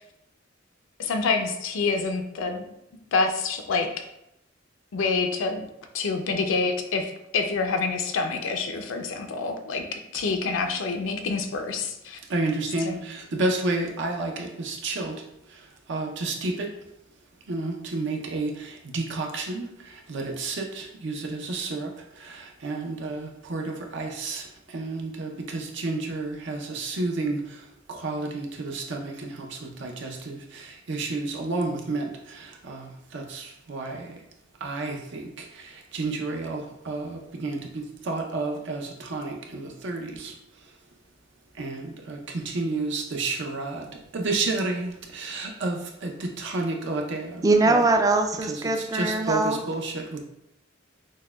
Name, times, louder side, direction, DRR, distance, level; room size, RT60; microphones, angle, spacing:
voice 1, 1.0-2.6 3.1-3.9 4.9-5.7 5.9-12.2 12.8-13.0, left 4 dB, 80° left, 5 dB, 0.4 m, -27 dB
voice 2, 12.3-15.2 15.9-16.7 17.5-19.7 20.1-21.9 22.2-24.5 24.7-27.4 27.9-34.1 34.6-35.3 35.9-40.3 41.6-43.9 44.1-47.4 47.7-47.8 48.9-50.2, right 3 dB, 70° right, 2 dB, 0.6 m, -31 dB
voice 3, 47.4-49.6, right 2 dB, 20° right, 5 dB, 0.3 m, -22 dB
6.2 x 2.2 x 2.2 m, 0.81 s
head